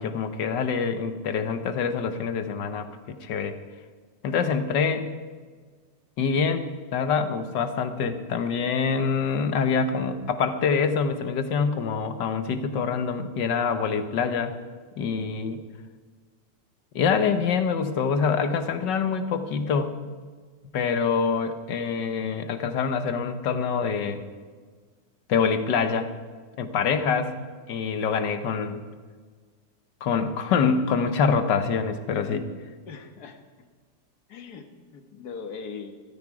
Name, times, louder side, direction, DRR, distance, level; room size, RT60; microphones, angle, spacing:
voice 1, 0.0-3.6 4.2-5.1 6.2-14.5 15.0-15.6 17.0-19.9 20.7-24.3 25.3-26.1 26.6-27.3 27.7-28.8 30.0-32.5, left 5 dB, 90° left, 9 dB, 1.7 m, -25 dB
voice 2, 32.9-33.4 34.3-35.9, left 5 dB, 65° left, 6 dB, 1.8 m, -40 dB
15.0 x 13.0 x 4.8 m, 1.5 s
omnidirectional pair, 1.8 m